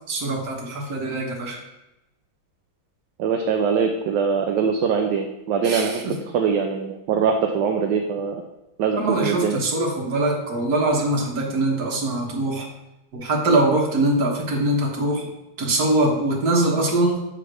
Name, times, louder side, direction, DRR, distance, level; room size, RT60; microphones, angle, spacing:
voice 1, 0.1-1.6 5.6-6.1 8.9-12.7 13.1-15.3 15.6-17.2, right 2 dB, 55° right, -1 dB, 1.7 m, -22 dB
voice 2, 3.2-5.9 6.3-8.4 8.8-9.6, right 6 dB, 75° right, 3 dB, 1.2 m, -22 dB
8.0 x 3.6 x 4.7 m, 0.93 s
omnidirectional pair, 2.1 m